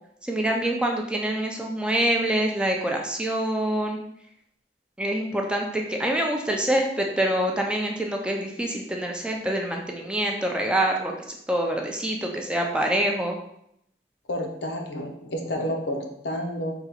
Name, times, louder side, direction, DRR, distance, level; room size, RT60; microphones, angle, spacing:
voice 1, 0.2-4.0 5.0-11.1 11.5-13.4, right 1 dB, 5° right, 1 dB, 0.4 m, -25 dB
voice 2, 14.3-16.7, equal, 80° left, 2 dB, 0.6 m, -30 dB
3.8 x 2.4 x 4.3 m, 0.75 s
head